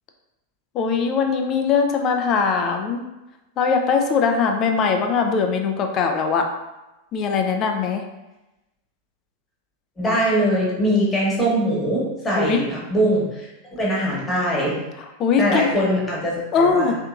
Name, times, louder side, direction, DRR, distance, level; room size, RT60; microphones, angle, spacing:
voice 1, 0.7-3.0 3.6-6.5 7.1-8.0 12.4-12.6 15.2-15.7 16.5-16.9, left 5 dB, 35° left, 4 dB, 0.4 m, -21 dB
voice 2, 10.0-13.5 13.8-14.8 15.3-17.0, equal, 15° left, -5 dB, 1.2 m, -22 dB
3.3 x 2.8 x 2.4 m, 1.0 s
figure-of-eight pair, 90°, 0 cm